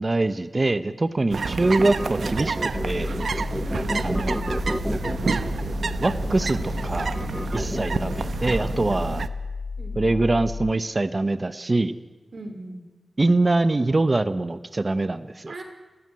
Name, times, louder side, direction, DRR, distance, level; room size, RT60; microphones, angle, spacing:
voice 1, 0.0-3.1 4.0-4.4 6.0-7.2 7.5-9.2 10.0-12.0 13.2-15.6, right 2 dB, 30° right, 13 dB, 0.9 m, -24 dB
sound 1, 1.3-9.3, right 5 dB, 80° right, 0.9 m, -29 dB
sound 2, 1.5-8.2, equal, 5° right, 0.8 m, -31 dB
sound 3, 2.7-10.7, left 4 dB, 50° left, 0.8 m, -33 dB
voice 2, 3.6-4.1 7.6-7.9 9.8-10.1 12.3-12.8 15.5-15.6, right 2 dB, 55° right, 5 dB, 4.5 m, -38 dB
29.5 x 14.0 x 9.8 m, 1.2 s
wide cardioid pair, 120°, 0 cm